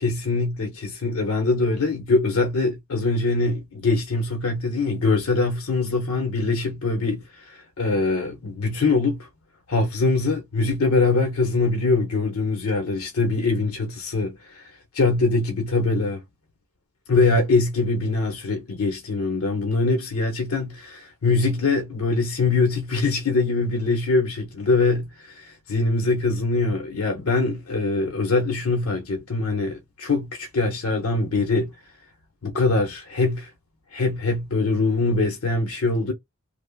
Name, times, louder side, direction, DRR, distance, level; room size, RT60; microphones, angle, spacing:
voice 1, 0.0-9.3 9.7-16.2 17.1-31.7 32.4-33.5 33.9-36.1, left 3 dB, 85° left, 0.8 m, -23 dB
3.3 x 2.0 x 2.2 m
head